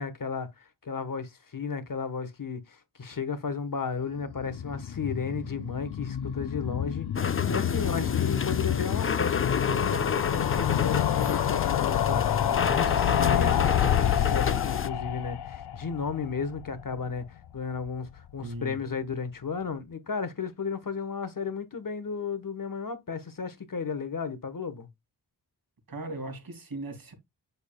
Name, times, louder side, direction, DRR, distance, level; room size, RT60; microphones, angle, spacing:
voice 1, 0.0-7.1 7.5-24.9, left 5 dB, 55° left, 1.3 m, -34 dB
sound 1, 4.2-17.3 17.6-17.7 17.9-18.0 18.2-18.3, left 10 dB, 80° left, 0.5 m, -28 dB
sound 2, 7.2-14.9, left 5 dB, 35° left, 0.6 m, -31 dB
voice 2, 7.8-8.1 18.4-18.8 25.9-27.1, right 2 dB, 60° right, 2.6 m, -38 dB
8.1 x 6.9 x 2.3 m
wide cardioid pair, 90°, 40 cm